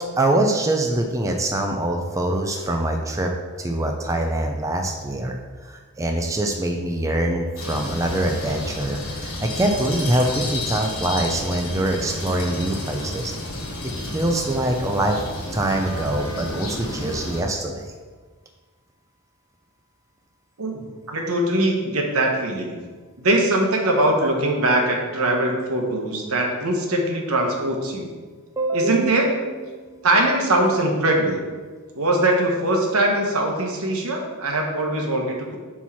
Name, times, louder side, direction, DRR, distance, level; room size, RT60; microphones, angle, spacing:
voice 1, 0.2-3.3 3.6-13.3 14.1-15.2 15.5-17.9 28.6-29.1 29.5-30.0, right 1 dB, 15° right, 2 dB, 0.4 m, -24 dB
sound 1, 7.6-17.4, left 1 dB, 70° left, 1.4 m, -31 dB
voice 2, 20.6-22.8 23.2-28.1 28.7-29.3 30.0-31.4 31.9-35.6, right 1 dB, 75° right, 1 dB, 1.1 m, -21 dB
4.5 x 4.2 x 5.6 m, 1.4 s
head